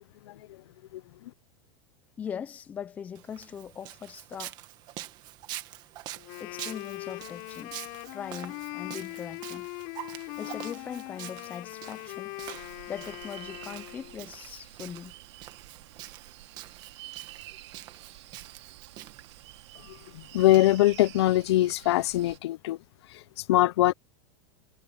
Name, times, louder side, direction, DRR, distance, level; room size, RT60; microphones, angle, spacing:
voice 1, 2.2-4.6 6.4-7.8 8.1-9.7 10.4-12.3 12.9-15.1, left 8 dB, 10° left, 0.4 m, -40 dB
Walk footsteps, 3.1-20.6, right 15 dB, 30° right, 1.5 m, -46 dB
Wind instrument woodwind instrument, 6.1-14.3, left 26 dB, 45° left, 3.3 m, -41 dB
sound 1, 12.4-22.4, right 16 dB, 80° right, 3.5 m, -49 dB
voice 2, 19.9-22.8 23.1-23.9, left 15 dB, 70° left, 0.6 m, -23 dB
supercardioid pair, 180°, 14 cm